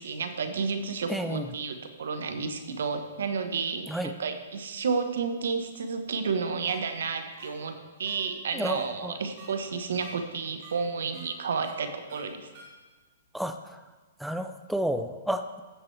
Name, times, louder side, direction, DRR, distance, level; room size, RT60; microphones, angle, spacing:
voice 1, 0.0-12.5, right 5 dB, 75° right, 7 dB, 1.1 m, -31 dB
voice 2, 1.1-1.5 3.9-4.1 8.5-9.1 13.3-13.8 14.2-15.6, equal, ahead, 8 dB, 0.5 m, -31 dB
sound 1, 6.7-6.8 7.4-7.5 8.1-8.2 8.7-8.8 9.4-9.5 10.0-10.1 10.6-10.7 11.1-11.2 11.6-11.7 12.1-12.2 12.5-12.6, right 5 dB, 45° right, 3.0 m, -49 dB
14.5 x 7.6 x 3.3 m, 1.3 s
hypercardioid pair, 145°, 0 cm